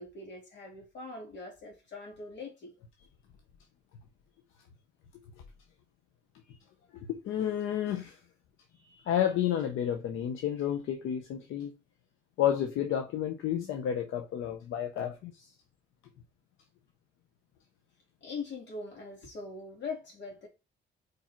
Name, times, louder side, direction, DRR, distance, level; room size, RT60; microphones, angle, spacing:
voice 1, 0.0-2.7 18.2-20.5, left 4 dB, 65° left, 3.4 m, -42 dB
voice 2, 7.1-8.2 8.8-11.7 12.4-15.5, left 10 dB, 85° left, 0.9 m, -31 dB
4.9 x 4.8 x 4.5 m
cardioid pair, 90°, 20 cm